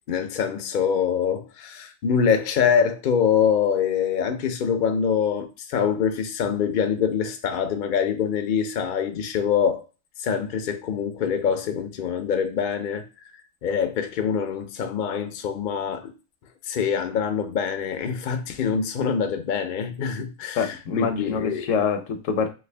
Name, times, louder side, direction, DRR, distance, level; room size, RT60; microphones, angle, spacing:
voice 1, 0.1-9.8 10.2-13.1 13.6-16.1 16.7-21.7, left 7 dB, 60° left, 0.5 m, -24 dB
voice 2, 20.6-22.5, left 6 dB, 75° left, 1.0 m, -25 dB
3.3 x 2.7 x 3.2 m
omnidirectional pair, 1.4 m